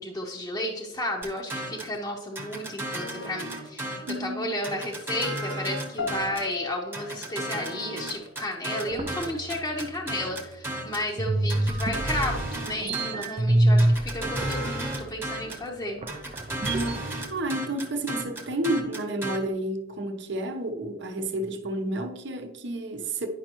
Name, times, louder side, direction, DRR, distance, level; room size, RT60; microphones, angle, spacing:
voice 1, 0.0-16.0, left 1 dB, 15° left, 0.7 m, -33 dB
sound 1, 1.2-2.0 2.4-4.2 4.6-6.5 6.9-11.1 11.5-13.4 13.8-15.7 16.1-19.4, right 1 dB, 10° right, 1.0 m, -34 dB
voice 2, 4.1-4.6 16.7-23.3, right 1 dB, 60° right, 0.8 m, -31 dB
sound 2, 6.0-9.0, left 4 dB, 60° left, 0.8 m, -39 dB
sound 3, 8.9-10.8 11.2-17.0, right 1 dB, 30° right, 0.4 m, -27 dB
9.8 x 5.5 x 3.0 m
head